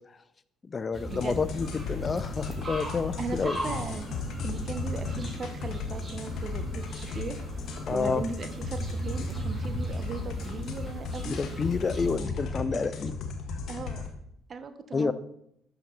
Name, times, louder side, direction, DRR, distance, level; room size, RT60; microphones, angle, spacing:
voice 1, 0.6-3.6 7.9-8.2 11.2-13.2 14.9-15.1, left 4 dB, 30° left, 15 dB, 0.7 m, -29 dB
sound 1, 0.9-12.2, right 1 dB, 15° right, 4.0 m, -38 dB
sound 2, 1.1-14.1, left 4 dB, 55° left, 1.6 m, -36 dB
voice 2, 3.2-6.8 7.1-7.4 7.9-11.4 12.7-12.9 13.7-14.0 14.5-15.1, right 5 dB, 40° right, 10 dB, 1.1 m, -38 dB
12.0 x 8.9 x 4.0 m, 0.75 s
figure-of-eight pair, 50°, 0 cm